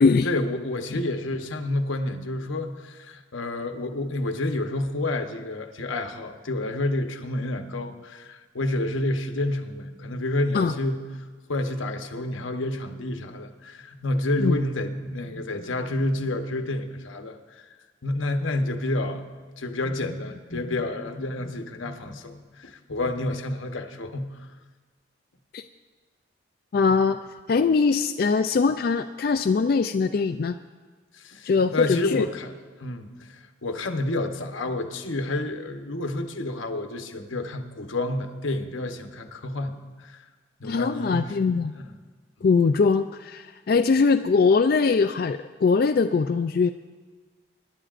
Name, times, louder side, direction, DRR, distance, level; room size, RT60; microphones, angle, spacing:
voice 1, 0.2-11.1 11.5-17.6 18.0-24.5 31.1-32.5 32.8-40.2 40.6-41.4 41.8-42.0, left 2 dB, 85° left, 6 dB, 1.0 m, -29 dB
voice 2, 26.7-27.2 27.5-30.5 31.4-32.2 40.6-41.7 42.4-46.7, left 4 dB, 50° left, 7 dB, 0.3 m, -21 dB
24.5 x 11.0 x 2.5 m, 1.4 s
head